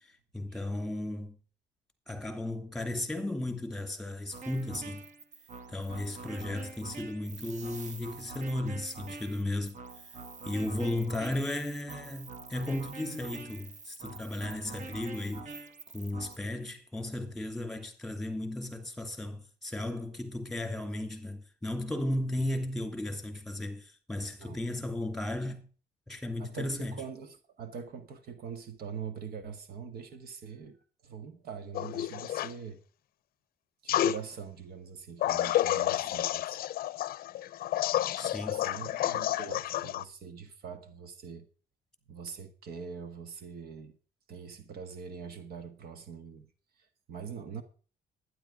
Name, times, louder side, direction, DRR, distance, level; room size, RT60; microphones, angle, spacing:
voice 1, 0.3-1.4 2.1-5.0 5.7-9.8 10.4-15.5 15.9-25.7 26.1-27.0 38.2-38.7, left 1 dB, ahead, 2.7 m, -35 dB
sound 1, 4.3-16.4, right 4 dB, 45° right, 1.6 m, -45 dB
voice 2, 26.4-30.8 31.0-32.8 33.8-36.6 38.4-41.5 42.1-43.9 44.3-46.5 46.8-47.6, right 6 dB, 65° right, 1.5 m, -43 dB
sound 2, 31.7-32.5 33.9-34.2 35.2-40.0, left 13 dB, 60° left, 0.6 m, -30 dB
12.0 x 10.0 x 4.9 m
cardioid pair, 110°, 17 cm